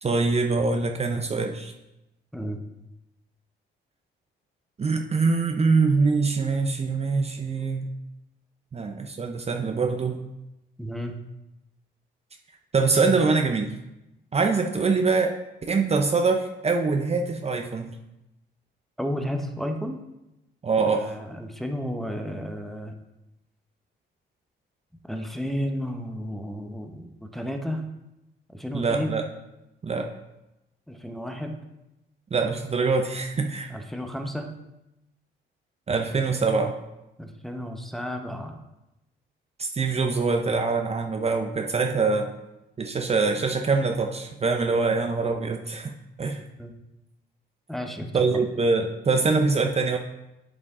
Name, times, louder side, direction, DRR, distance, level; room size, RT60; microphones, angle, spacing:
voice 1, 0.0-1.7 4.8-7.9 8.7-10.2 12.7-13.7 14.3-15.3 15.7-18.0 20.6-21.0 28.7-29.2 29.8-30.1 32.3-33.7 35.9-36.8 39.6-42.3 42.8-45.9 46.2-46.4 48.1-50.0, right 4 dB, 30° right, 4 dB, 0.7 m, -24 dB
voice 2, 10.8-11.1 19.0-20.0 20.9-22.9 25.1-27.8 28.5-29.2 30.9-31.6 33.7-34.5 37.2-38.6 46.6-46.7 47.7-48.5, equal, ahead, 3 dB, 0.9 m, -32 dB
11.0 x 5.0 x 3.7 m, 0.93 s
cardioid pair, 90°, 20 cm